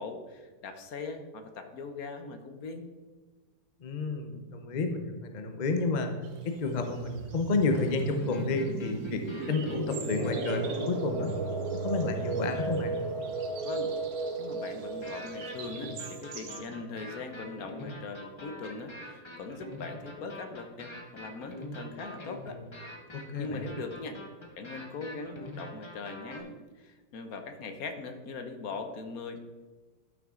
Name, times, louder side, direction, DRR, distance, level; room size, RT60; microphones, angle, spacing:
voice 1, 0.0-2.9 13.6-13.9 14.4-22.6 23.4-24.2 24.6-29.4, left 4 dB, 60° left, 6 dB, 1.2 m, -40 dB
voice 2, 3.8-6.1 6.4-9.2 9.5-11.3 11.8-13.0 23.3-23.7, left 3 dB, 75° left, 5 dB, 0.4 m, -30 dB
sound 1, 6.2-16.6, right 7 dB, 90° right, 1.6 m, -49 dB
sound 2, 7.0-17.5, right 3 dB, 60° right, 1.3 m, -36 dB
sound 3, 7.9-13.2 15.0-26.4, right 2 dB, 25° left, 0.6 m, -43 dB
12.0 x 6.1 x 3.7 m, 1.3 s
omnidirectional pair, 2.0 m